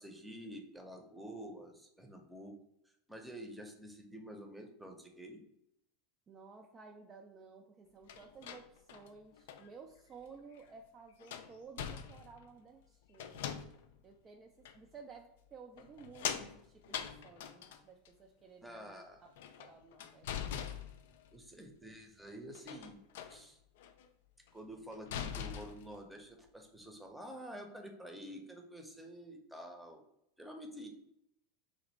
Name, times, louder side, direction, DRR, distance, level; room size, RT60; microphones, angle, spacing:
voice 1, 0.0-2.5 3.1-5.4 18.6-19.2 21.3-23.0 23.3-23.6 24.5-30.0 30.4-30.9, equal, 5° right, 3 dB, 0.7 m, -49 dB
voice 2, 6.3-13.5 14.0-19.3 19.6-20.3, right 5 dB, 30° right, 2 dB, 0.4 m, -55 dB
sound 1, 8.1-9.7 10.5-10.6 11.2-12.5 13.1-14.0 14.6-14.8 15.8-18.1 19.2-21.3 22.5-23.4 23.8-24.1 24.5-24.6 24.9-26.0, left 8 dB, 60° left, 0.3 m, -43 dB
3.2 x 2.8 x 4.0 m, 0.81 s
figure-of-eight pair, 80°, 0 cm